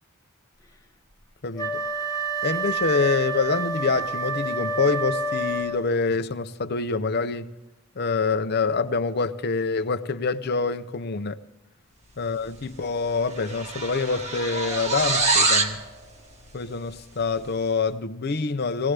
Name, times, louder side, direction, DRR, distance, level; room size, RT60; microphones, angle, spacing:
voice 1, 1.4-1.8 2.4-7.5 8.0-11.4 12.2-15.8 16.5-18.9, left 4 dB, 45° left, 0.6 m, -26 dB
Wind instrument woodwind instrument, 1.5-6.0, right 2 dB, 15° left, 0.9 m, -28 dB
sound 1, 12.6-12.8 13.1-15.8, right 3 dB, 30° right, 1.3 m, -24 dB
19.5 x 16.5 x 3.3 m
head